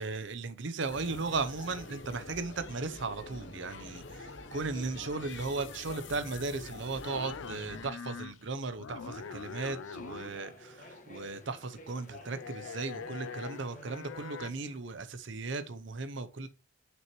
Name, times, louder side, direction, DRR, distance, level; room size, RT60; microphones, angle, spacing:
voice 1, 0.0-16.5, right 3 dB, 60° right, 0.7 m, -36 dB
sound 1, 0.9-7.9, left 3 dB, 60° left, 0.9 m, -45 dB
sound 2, 7.0-8.5 8.8-10.5 12.3-14.5, left 6 dB, 75° left, 0.4 m, -43 dB
sound 3, 9.0-14.8, left 2 dB, 40° left, 1.4 m, -52 dB
6.2 x 6.1 x 3.1 m
head